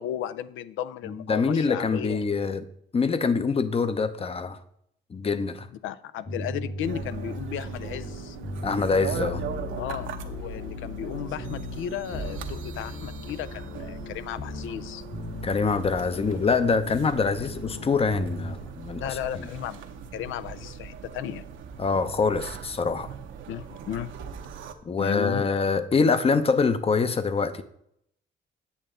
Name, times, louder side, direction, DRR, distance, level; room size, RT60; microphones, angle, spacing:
voice 1, 0.0-2.5 5.8-8.4 9.8-15.0 19.0-19.8 20.1-21.5 23.5-24.1 25.0-25.5, left 10 dB, 80° left, 0.5 m, -35 dB
voice 2, 1.0-2.7 2.9-4.6 5.1-5.7 8.6-9.4 15.4-19.5 21.8-23.1 24.8-27.6, left 4 dB, 30° left, 0.7 m, -25 dB
sound 1, 6.2-18.5, left 2 dB, 55° left, 1.6 m, -38 dB
sound 2, 6.8-24.7, right 7 dB, 75° right, 0.8 m, -40 dB
8.6 x 6.7 x 3.8 m
cardioid pair, 90°, 20 cm